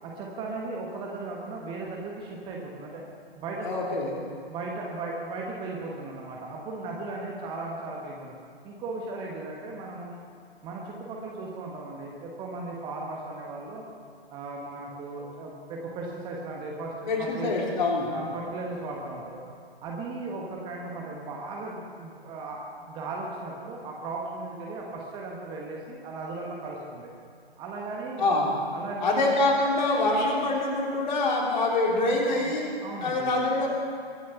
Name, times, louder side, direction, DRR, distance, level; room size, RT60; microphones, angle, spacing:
voice 1, 0.0-3.0 3.4-3.9 4.5-8.3 8.6-10.2 10.6-13.8 14.3-17.6 18.1-19.4 19.8-22.6 22.9-27.1 27.6-28.4 28.7-29.3 32.8-33.3, right 3 dB, 15° right, -1 dB, 1.3 m, -36 dB
voice 2, 3.6-4.1 17.1-18.1 28.2-28.6 29.0-32.7 33.0-33.7, left 2 dB, 45° left, -2 dB, 3.6 m, -25 dB
23.0 x 8.1 x 5.8 m, 2.4 s
figure-of-eight pair, 125°, 31 cm